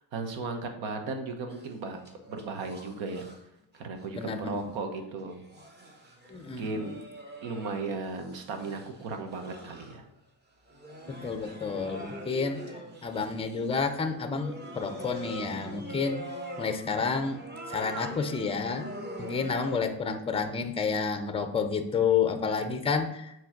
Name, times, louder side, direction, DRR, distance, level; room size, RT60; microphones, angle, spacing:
voice 1, 0.0-2.0 2.3-3.3 3.8-5.4 6.6-7.0 7.4-10.0, right 3 dB, 75° right, 5 dB, 1.3 m, -36 dB
sound 1, 1.5-3.4 3.7-4.7 5.3-10.2 10.7-19.8, equal, 20° right, 1.0 m, -43 dB
voice 2, 4.2-4.7 6.3-6.9 11.1-12.6 13.0-16.2 16.6-17.4 17.7-18.8 19.2-23.3, left 5 dB, 15° left, 8 dB, 0.5 m, -30 dB
7.6 x 3.2 x 5.8 m, 0.86 s
cardioid pair, 155°, 46 cm